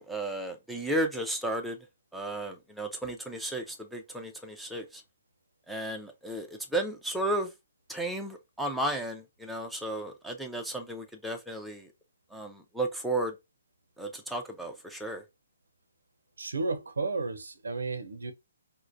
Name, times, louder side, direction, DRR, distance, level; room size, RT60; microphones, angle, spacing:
voice 1, 0.0-1.8 2.1-5.0 5.7-7.5 7.9-11.9 12.3-13.3 14.0-15.2, right 1 dB, ahead, 0.5 m, -34 dB
voice 2, 16.4-18.3, right 3 dB, 85° right, 0.6 m, -33 dB
4.6 x 2.1 x 2.5 m
hypercardioid pair, 145°, 0 cm